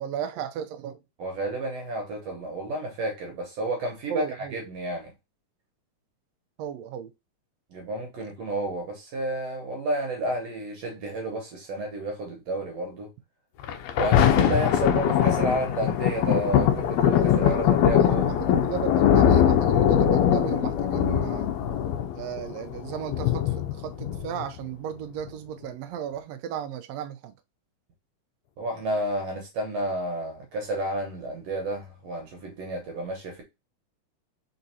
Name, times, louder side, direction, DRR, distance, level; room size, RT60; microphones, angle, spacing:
voice 1, 0.0-1.0 4.1-4.6 6.6-7.1 17.1-21.5 22.1-27.3, right 9 dB, 85° right, 1.5 m, -35 dB
voice 2, 1.2-5.1 7.7-13.1 14.0-18.4 28.6-33.4, right 1 dB, 65° right, 2.0 m, -31 dB
Thunder, 13.6-24.6 25.3-25.4, left 9 dB, 80° left, 1.5 m, -22 dB
4.6 x 4.1 x 2.7 m
omnidirectional pair, 3.7 m